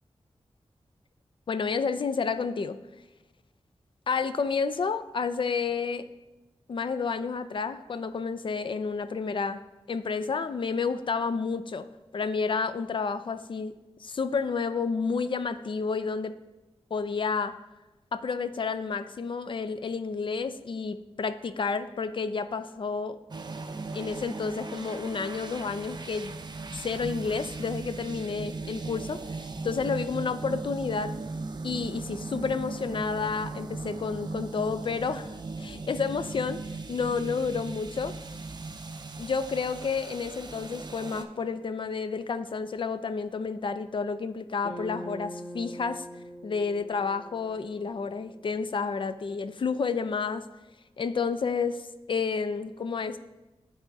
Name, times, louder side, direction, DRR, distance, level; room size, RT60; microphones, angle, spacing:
voice 1, 1.5-2.8 4.1-6.0 6.7-9.6 9.9-11.9 12.1-13.7 14.0-16.4 16.9-17.6 18.1-23.2 23.9-26.3 26.7-31.1 31.6-38.1 39.2-46.0 46.4-50.5 51.0-53.2, left 5 dB, 55° left, 11 dB, 0.4 m, -30 dB
sound 1, 23.3-41.3, right 3 dB, 45° right, 0.5 m, -38 dB
sound 2, 44.6-49.0, equal, 85° left, 1.5 m, -43 dB
12.0 x 4.0 x 2.7 m, 1.1 s
wide cardioid pair, 85°, 11 cm